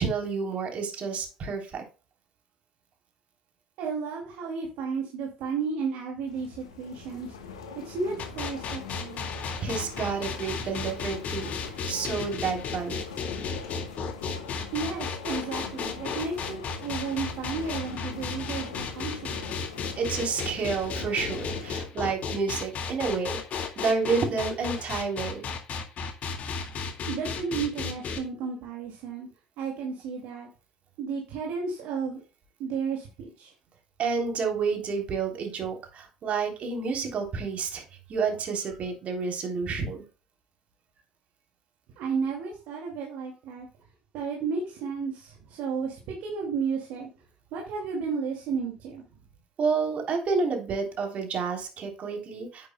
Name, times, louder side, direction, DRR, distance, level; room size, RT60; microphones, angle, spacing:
voice 1, 0.0-1.8 9.6-11.5 11.9-13.0 20.0-25.5 34.0-37.8 38.1-40.0 49.6-52.7, right 5 dB, 50° right, 2 dB, 3.5 m, -29 dB
voice 2, 3.8-7.3 7.8-9.2 14.7-19.5 27.1-29.3 29.6-30.5 31.0-32.2 32.6-33.5 42.0-43.7 44.1-47.1 47.5-49.0, right 5 dB, 65° right, -1 dB, 2.4 m, -33 dB
sound 1, 6.3-21.7, left 5 dB, 80° left, 1.4 m, -42 dB
sound 2, 8.2-28.2, left 5 dB, 50° left, 2.0 m, -34 dB
10.0 x 9.6 x 2.2 m, 0.32 s
figure-of-eight pair, 55°, 3 cm